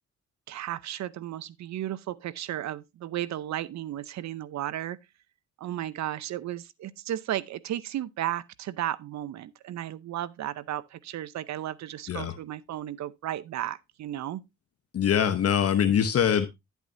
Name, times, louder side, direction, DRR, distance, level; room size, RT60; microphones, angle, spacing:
voice 1, 0.5-5.0 5.6-14.4, right 12 dB, 65° right, 0.7 m, -34 dB
voice 2, 14.9-16.5, left 8 dB, 50° left, 0.9 m, -23 dB
10.5 x 8.2 x 2.6 m
cardioid pair, 90°, 30 cm